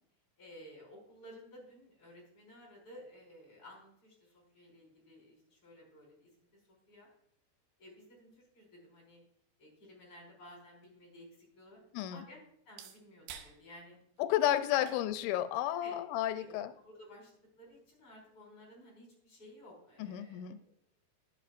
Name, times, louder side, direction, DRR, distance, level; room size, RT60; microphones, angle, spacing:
voice 1, 0.4-7.1 7.8-9.2 9.6-11.8 12.1-12.4 12.7-14.0 14.7-14.9 15.8-20.7, equal, 30° left, -3 dB, 5.3 m, -55 dB
sound 1, 10.3-18.3, right 9 dB, 90° right, 3.2 m, -58 dB
voice 2, 11.9-12.3 14.2-16.7 20.0-20.6, left 12 dB, 85° left, 10 dB, 3.0 m, -32 dB
21.5 x 7.7 x 2.5 m, 0.68 s
omnidirectional pair, 5.2 m